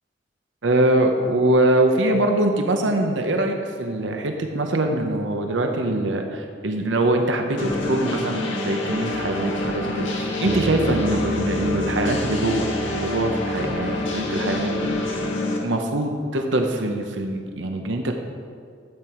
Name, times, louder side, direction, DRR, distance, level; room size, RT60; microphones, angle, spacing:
voice 1, 0.6-15.2 15.6-18.1, right 1 dB, 75° right, 4 dB, 0.9 m, -23 dB
sound 1, 7.6-15.6, left 2 dB, 80° left, 1.6 m, -27 dB
sound 2, 9.1-14.9, right 3 dB, 40° right, 0.4 m, -34 dB
13.0 x 8.1 x 4.5 m, 2.1 s
head